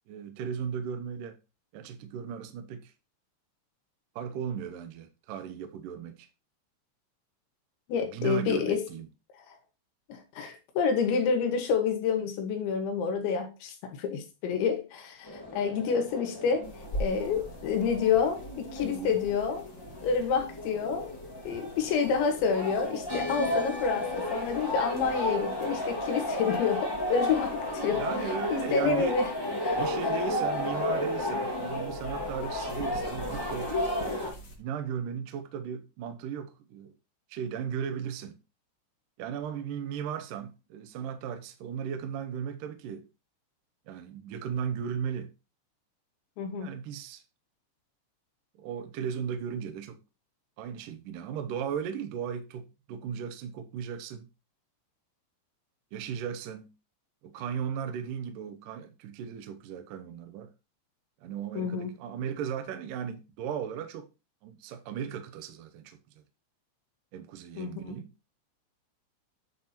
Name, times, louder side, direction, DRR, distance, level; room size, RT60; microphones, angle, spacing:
voice 1, 0.1-1.4 1.7-2.9 4.2-6.3 8.0-9.1 18.8-19.2 27.9-29.2 29.8-33.7 34.6-36.9 37.3-38.4 39.2-43.1 43.9-45.3 46.5-47.2 48.6-50.0 50.6-54.3 55.9-56.7 57.2-60.5 61.2-64.1 64.4-66.0 67.1-68.1, right 7 dB, 75° right, 2.0 m, -36 dB
voice 2, 7.9-8.9 10.1-16.7 17.0-19.7 20.0-21.1 21.5-28.1 28.5-29.3 29.6-29.8 30.1-30.2 46.4-46.7 61.5-61.9 67.6-67.7, left 6 dB, 85° left, 3.9 m, -28 dB
sound 1, 15.3-34.3, left 1 dB, 35° left, 0.3 m, -33 dB
sound 2, 16.6-34.6, equal, 55° left, 1.2 m, -45 dB
10.0 x 4.3 x 4.3 m
omnidirectional pair, 5.2 m